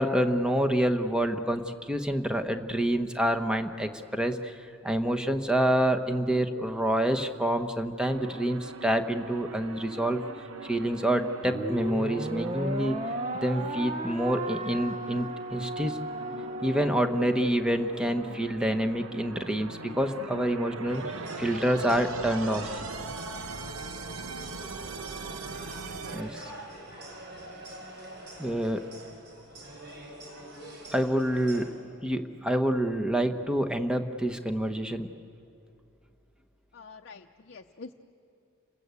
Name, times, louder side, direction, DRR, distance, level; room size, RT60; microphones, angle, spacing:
voice 1, 0.0-10.2 10.6-13.0 13.4-16.0 16.6-22.8 26.1-26.5 28.4-28.8 30.9-31.7 32.0-35.1, right 1 dB, 5° right, 6 dB, 1.1 m, -27 dB
sound 1, 8.1-26.2, right 4 dB, 75° right, 1.0 m, -41 dB
sound 2, 11.4-18.0, right 1 dB, 35° right, 1.1 m, -35 dB
sound 3, 20.9-31.7, right 1 dB, 55° right, 5.5 m, -43 dB
voice 2, 36.7-37.9, left 4 dB, 55° left, 2 dB, 0.7 m, -46 dB
30.0 x 21.0 x 8.3 m, 2.5 s
head